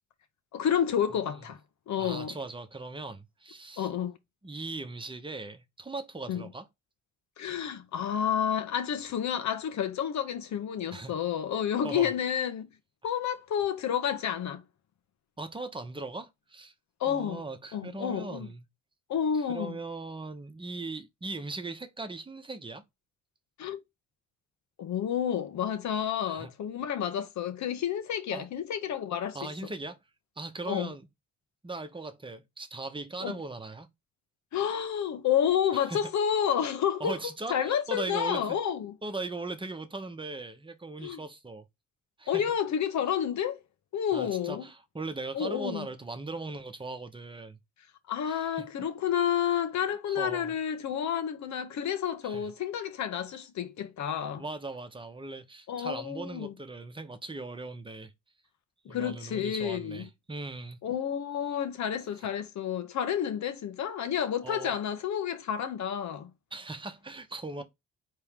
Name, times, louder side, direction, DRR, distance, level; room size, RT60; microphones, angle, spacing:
voice 1, 0.5-1.6 1.9-2.3 3.8-4.1 6.3-6.5 7.4-12.7 13.0-14.6 17.0-17.4 17.7-18.5 19.1-19.7 23.6-23.8 24.8-29.4 30.7-30.9 33.2-33.4 34.5-37.2 37.5-38.9 41.0-41.2 42.3-43.6 43.9-44.6 45.3-45.9 48.1-54.4 55.7-56.5 58.8-60.0 60.8-66.3, left 9 dB, 65° left, 1.1 m, -30 dB
voice 2, 1.1-1.4 2.0-3.9 4.4-6.7 10.9-11.1 11.8-12.1 15.4-16.7 17.1-18.6 19.3-22.8 26.2-26.5 28.3-28.5 29.3-30.0 30.4-31.1 31.6-33.9 35.7-36.0 37.0-38.6 39.0-41.7 42.2-42.4 44.1-47.6 48.2-48.7 50.1-50.6 52.2-52.5 54.4-58.1 58.9-60.8 62.2-62.3 64.4-64.7 66.5-67.6, right 3 dB, 15° right, 1.0 m, -39 dB
4.4 x 3.3 x 3.6 m
cardioid pair, 90°, 30 cm